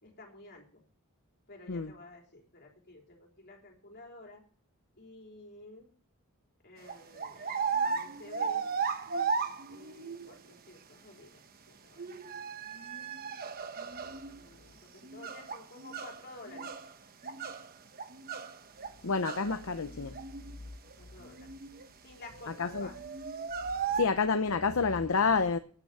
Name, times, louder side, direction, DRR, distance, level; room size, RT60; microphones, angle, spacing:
voice 1, 0.0-0.8 1.5-4.4 5.0-5.9 6.6-8.7 9.7-11.4 11.7-12.1 14.3-16.7 21.0-21.5 22.0-22.9, left 2 dB, 50° left, 3.9 m, -52 dB
sound 1, 6.8-10.4 12.0-14.4 15.0-16.9 17.2-19.6 19.9-20.6 20.9-21.0 21.2-21.9 22.2-24.0, right 5 dB, 40° right, 1.0 m, -36 dB
voice 2, 19.0-20.2 22.5-22.9 23.9-25.6, left 4 dB, 65° left, 0.8 m, -29 dB
9.8 x 9.0 x 7.1 m
head